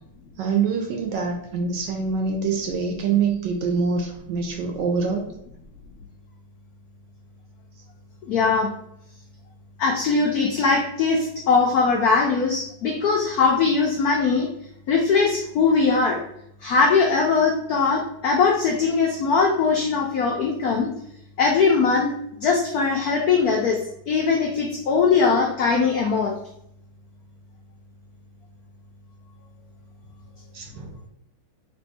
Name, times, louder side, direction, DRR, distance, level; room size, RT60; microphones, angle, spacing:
voice 1, 0.4-5.3 30.5-30.9, right 5 dB, 75° right, 3 dB, 1.1 m, -25 dB
voice 2, 8.2-8.7 9.8-14.5 14.9-16.2 16.6-20.9 21.4-22.1 22.4-26.4, left 4 dB, 85° left, 0 dB, 0.8 m, -20 dB
3.4 x 2.6 x 4.0 m, 0.75 s
omnidirectional pair, 2.3 m